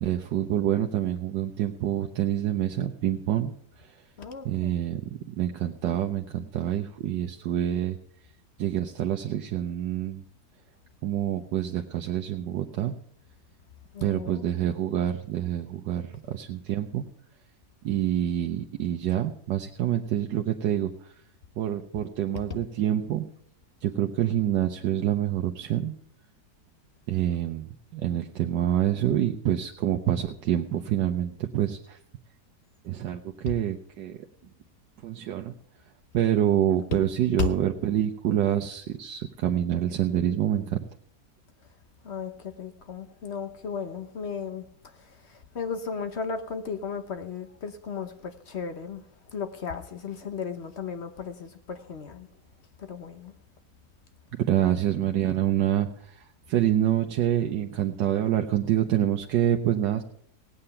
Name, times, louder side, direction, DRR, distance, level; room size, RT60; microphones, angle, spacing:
voice 1, 0.0-3.5 4.4-5.0 5.3-8.0 8.6-10.2 11.0-12.9 14.0-17.0 17.8-20.9 21.6-23.3 23.8-25.9 27.1-32.0 32.8-34.1 35.0-35.6 36.1-40.8 54.4-60.0, right 11 dB, 90° right, 1.4 m, -27 dB
voice 2, 4.2-4.7 13.9-14.5 22.5-22.6 37.4-37.5 42.0-44.6 45.5-49.0 49.3-52.3 52.8-53.3, left 6 dB, 45° left, 1.1 m, -35 dB
17.5 x 8.8 x 5.7 m
omnidirectional pair, 1.8 m